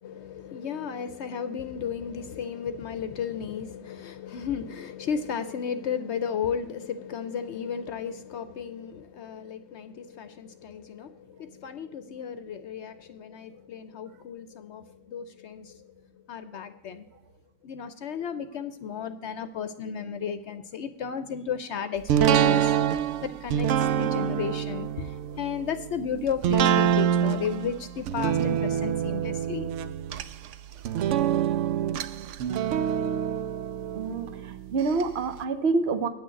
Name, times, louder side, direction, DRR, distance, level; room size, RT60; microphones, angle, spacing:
voice 1, 0.0-15.9 16.3-17.1 17.6-22.7 23.2-29.7, left 7 dB, 65° left, 0.8 m, -34 dB
sound 1, 22.1-35.0 35.4-35.5, right 9 dB, 70° right, 0.9 m, -26 dB
voice 2, 33.9-36.1, right 4 dB, 55° right, 1.1 m, -27 dB
9.0 x 6.3 x 7.7 m
omnidirectional pair, 1.3 m